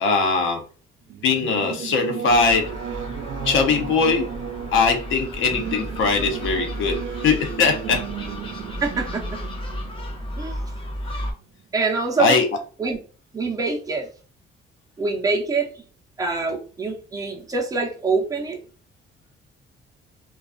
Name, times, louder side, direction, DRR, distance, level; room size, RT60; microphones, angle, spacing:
voice 1, 0.0-0.6 1.2-2.7 3.4-4.3 4.7-7.0 7.2-8.0 11.1-11.2 12.2-12.4, left 4 dB, 80° left, 4 dB, 0.7 m, -20 dB
Singing / Musical instrument, 1.1-11.2, right 8 dB, 75° right, 0.4 m, -34 dB
Gull seagull, 2.3-11.3, left 1 dB, 25° left, 0.9 m, -34 dB
voice 2, 8.8-9.4 10.4-10.6 11.7-12.4 12.8-13.0 13.3-14.1 15.0-15.8 16.2-18.6, right 4 dB, 15° right, 0 dB, 0.6 m, -25 dB
2.3 x 2.3 x 2.3 m, 0.37 s
cardioid pair, 90°, 20 cm